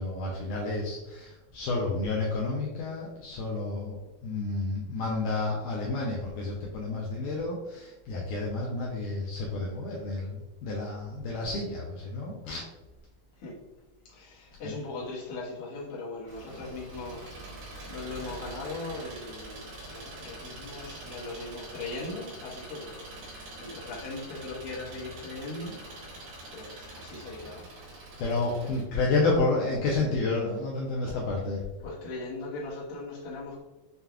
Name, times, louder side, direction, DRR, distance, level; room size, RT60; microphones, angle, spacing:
voice 1, 0.0-12.6 14.6-14.7 28.2-31.6, left 3 dB, 85° left, -3 dB, 1.9 m, -30 dB
voice 2, 14.1-26.1 26.5-27.7 28.4-28.7 31.8-33.6, left 2 dB, 60° left, -6 dB, 1.5 m, -39 dB
Engine, 16.3-28.8, right 2 dB, 70° right, 2.7 m, -44 dB
6.7 x 2.3 x 2.3 m, 1.0 s
omnidirectional pair, 4.1 m